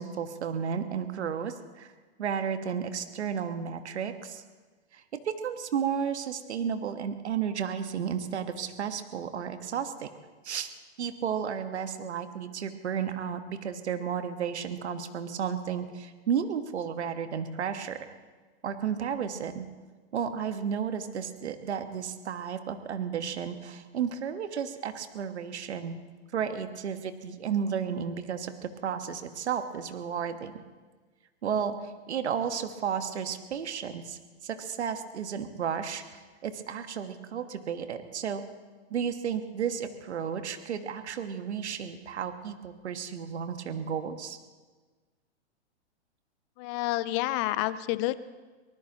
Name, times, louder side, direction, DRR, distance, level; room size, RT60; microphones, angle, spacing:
voice 1, 0.0-1.9 2.2-4.4 4.9-10.1 10.4-10.7 11.0-18.1 18.6-19.7 20.1-26.0 26.3-30.5 31.4-38.4 38.9-44.4, right 7 dB, 75° right, 8 dB, 1.4 m, -33 dB
voice 2, 46.6-48.2, left 16 dB, 25° left, 16 dB, 0.4 m, -29 dB
24.5 x 19.0 x 3.0 m, 1.4 s
hypercardioid pair, 130°, 34 cm